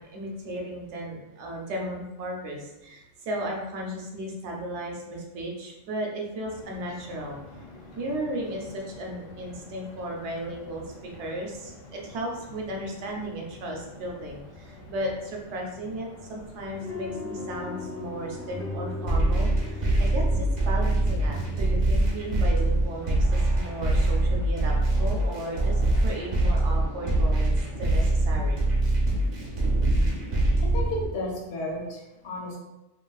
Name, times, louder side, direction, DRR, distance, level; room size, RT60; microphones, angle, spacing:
voice 1, 0.0-7.4 7.9-27.5 27.8-28.6, right 1 dB, 75° right, 0 dB, 0.9 m, -35 dB
sound 1, 6.4-26.2, left 2 dB, 50° left, 0.9 m, -48 dB
sound 2, 16.7-23.0, left 2 dB, 20° left, 0.4 m, -38 dB
sound 3, 19.1-31.1, right 2 dB, 45° right, 0.6 m, -24 dB
voice 2, 30.6-32.6, left 1 dB, 75° left, -2 dB, 1.0 m, -33 dB
3.1 x 2.5 x 2.3 m, 1.0 s
omnidirectional pair, 1.3 m